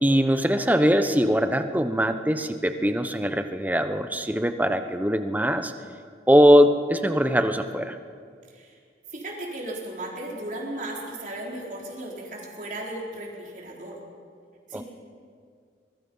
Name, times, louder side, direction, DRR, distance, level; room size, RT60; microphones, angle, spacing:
voice 1, 0.0-5.7 6.3-8.0 14.7-14.8, equal, 10° right, 8 dB, 0.9 m, -21 dB
voice 2, 9.1-14.0 14.7-14.8, right 1 dB, 45° right, -2 dB, 4.3 m, -35 dB
24.0 x 21.5 x 5.6 m, 2.2 s
head